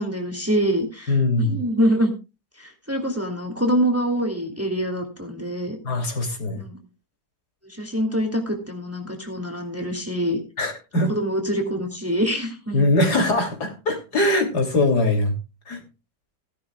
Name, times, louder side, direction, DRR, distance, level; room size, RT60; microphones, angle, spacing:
voice 1, 0.0-2.1 2.6-5.8 6.6-6.8 7.6-10.4 11.0-12.8, equal, 10° right, 3 dB, 2.4 m, -25 dB
voice 2, 1.1-1.6 5.8-6.6 10.6-11.1 12.7-15.3 15.7-15.8, left 2 dB, 65° left, 3 dB, 3.4 m, -21 dB
17.5 x 11.5 x 2.3 m, 0.28 s
omnidirectional pair, 1.8 m